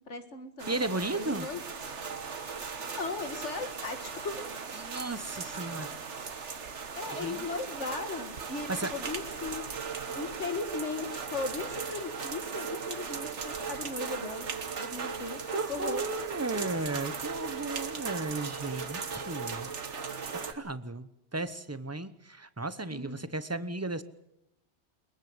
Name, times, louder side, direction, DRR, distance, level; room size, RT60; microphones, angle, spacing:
voice 1, 0.0-1.6 3.0-4.5 7.0-9.7 10.1-14.5 14.8-16.0 16.5-16.8 22.9-23.3, left 4 dB, 80° left, 8 dB, 2.2 m, -37 dB
sound 1, 0.6-20.5, right 5 dB, 75° right, 1.8 m, -38 dB
voice 2, 0.7-1.5 4.8-5.9 7.1-7.5 8.7-8.9 15.5-19.7 20.2-24.0, right 2 dB, 15° right, 13 dB, 1.0 m, -35 dB
22.5 x 22.0 x 8.0 m, 0.83 s
omnidirectional pair, 1.2 m